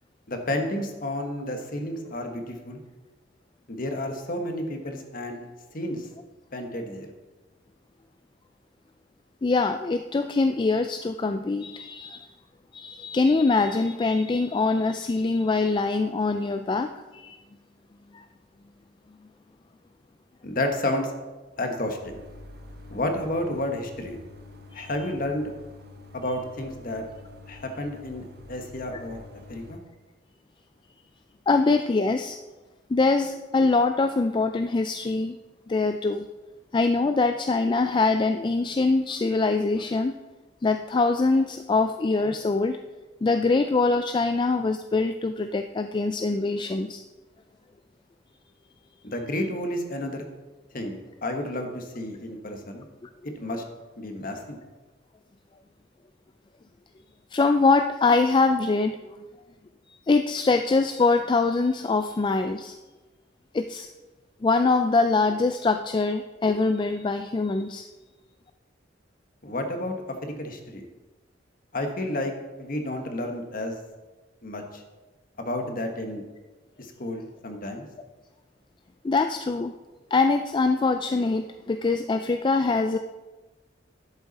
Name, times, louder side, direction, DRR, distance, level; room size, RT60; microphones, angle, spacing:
voice 1, 0.3-2.8 3.7-5.4 5.7-6.1 6.5-7.1 20.4-21.1 21.6-22.2 22.9-24.2 24.7-25.5 26.1-27.0 27.5-29.2 29.5-29.8 49.0-50.3 50.7-52.9 53.4-53.6 54.0-54.6 69.4-70.8 71.7-72.3 72.6-73.8 74.4-74.8 75.4-76.2 76.8-77.9, left 1 dB, 50° left, 4 dB, 1.3 m, -31 dB
voice 2, 9.4-12.3 12.7-17.4 18.1-18.2 24.8-24.9 28.9-29.0 31.5-32.4 32.9-35.4 35.7-36.3 36.7-40.2 40.6-42.8 43.2-47.0 53.0-53.1 57.3-59.0 60.1-62.8 63.5-63.9 64.4-67.9 79.0-79.8 80.1-83.0, left 3 dB, 25° left, 7 dB, 0.3 m, -23 dB
sound 1, 22.0-29.8, left 2 dB, 55° right, 1.1 m, -47 dB
11.0 x 8.1 x 4.1 m, 1.2 s
head